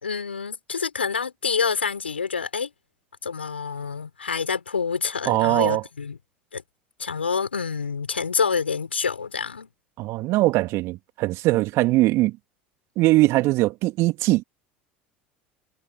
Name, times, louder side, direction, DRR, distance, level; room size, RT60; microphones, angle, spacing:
voice 1, 0.0-2.7 3.2-6.2 6.5-6.6 7.0-9.7, left 5 dB, 90° left, 4.9 m, -27 dB
voice 2, 5.3-5.8 10.0-12.4 13.0-14.4, right 19 dB, 55° right, 2.6 m, -21 dB
figure-of-eight pair, 70°, 6 cm